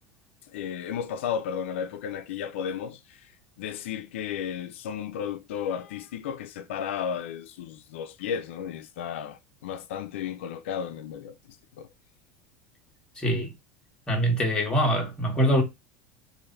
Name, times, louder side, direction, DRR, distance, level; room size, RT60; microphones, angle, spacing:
voice 1, 0.5-3.0 3.6-11.3 11.8-11.9, left 8 dB, 90° left, 0.4 m, -33 dB
voice 2, 13.2-13.5 14.1-15.6, equal, 10° left, 1.4 m, -24 dB
3.3 x 2.6 x 3.8 m
supercardioid pair, 130°, 6 cm